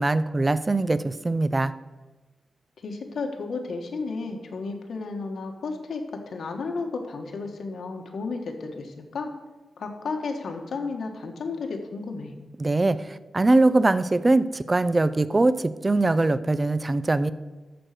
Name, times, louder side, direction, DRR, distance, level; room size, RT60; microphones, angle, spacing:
voice 1, 0.0-1.7 12.6-17.3, right 2 dB, 25° right, 14 dB, 0.4 m, -22 dB
voice 2, 2.8-9.3 9.8-12.3, left 4 dB, 80° left, 3 dB, 1.5 m, -33 dB
13.5 x 4.7 x 6.7 m, 1.2 s
wide cardioid pair, 140°, 0 cm